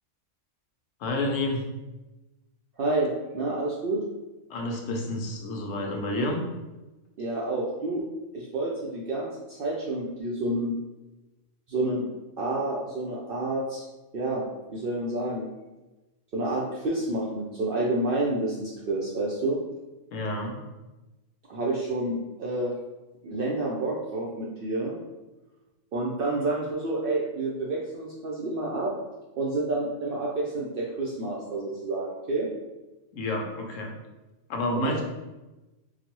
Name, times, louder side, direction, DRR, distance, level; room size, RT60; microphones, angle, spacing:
voice 1, 1.0-1.7 4.5-6.4 20.1-20.6 33.1-33.9 34.5-35.0, left 2 dB, 75° left, 1 dB, 1.0 m, -29 dB
voice 2, 2.8-4.0 7.2-8.0 8.3-10.8 11.7-12.1 12.4-13.8 14.1-14.4 14.7-15.5 16.3-19.6 21.5-22.7 23.2-24.9 25.9-28.9 29.4-32.5 34.7-35.0, right 2 dB, 65° right, -4 dB, 0.6 m, -29 dB
3.8 x 2.1 x 2.9 m, 1.1 s
omnidirectional pair, 1.4 m